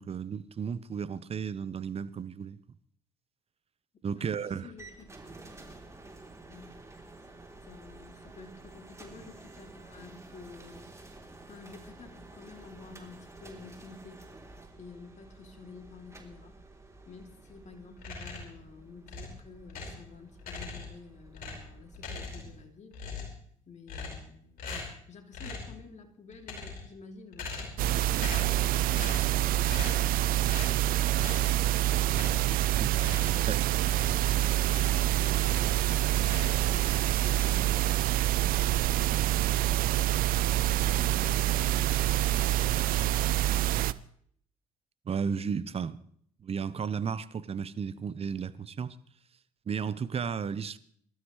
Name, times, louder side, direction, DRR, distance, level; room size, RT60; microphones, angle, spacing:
voice 1, 0.0-2.6 4.0-4.7 32.8-32.9 33.5-33.6 45.1-46.0 46.4-49.0 49.7-50.8, right 6 dB, 35° right, 0.9 m, -33 dB
voice 2, 4.2-5.3 6.5-6.7 7.6-10.9 11.5-14.2 14.8-16.6 17.1-23.0 23.7-32.3 33.2-33.5 34.4-39.8 40.5-43.5, left 4 dB, 45° left, 2.8 m, -50 dB
sound 1, 4.8-22.6, right 2 dB, 15° right, 3.3 m, -51 dB
sound 2, 18.0-18.6 19.1-20.1 20.4-21.0 21.3-22.6 22.9-23.4 23.9-24.3 24.6-25.0 25.3-25.8 26.3-27.0 27.3-27.9 28.1-28.6 28.9-29.3 29.7-30.1 30.5-30.8 31.2-31.5 32.1-32.6 32.9-35.0 35.3-35.8 36.2-37.0, left 4 dB, 65° left, 5.1 m, -41 dB
sound 3, 27.8-43.9, right 14 dB, 60° right, 0.6 m, -26 dB
24.0 x 13.0 x 3.2 m
hypercardioid pair, 55°, 17 cm